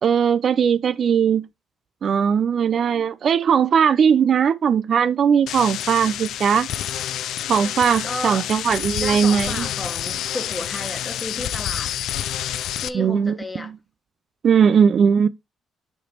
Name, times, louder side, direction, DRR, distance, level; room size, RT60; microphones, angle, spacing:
voice 1, 0.0-1.4 2.0-6.7 7.5-9.7 12.9-13.4 14.4-15.3, right 7 dB, 55° right, 0.4 m, -19 dB
sound 1, 5.5-12.9, left 11 dB, 80° left, 0.4 m, -28 dB
voice 2, 8.0-8.5 9.0-11.9 12.8-13.7, left 1 dB, 20° left, 1.3 m, -32 dB
6.4 x 3.3 x 4.4 m
cardioid pair, 90°, 0 cm